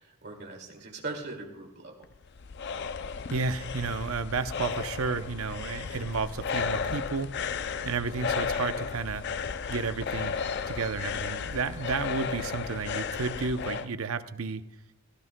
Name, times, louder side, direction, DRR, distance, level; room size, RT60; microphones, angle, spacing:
voice 1, 0.0-2.0 7.8-7.9, right 3 dB, 50° right, 1 dB, 2.3 m, -40 dB
sound 1, 2.0-13.9, left 6 dB, 50° left, 0.4 m, -34 dB
voice 2, 3.3-7.4 7.9-9.2 9.7-14.6, right 4 dB, 75° right, 11 dB, 0.6 m, -32 dB
18.0 x 14.0 x 2.2 m, 0.93 s
head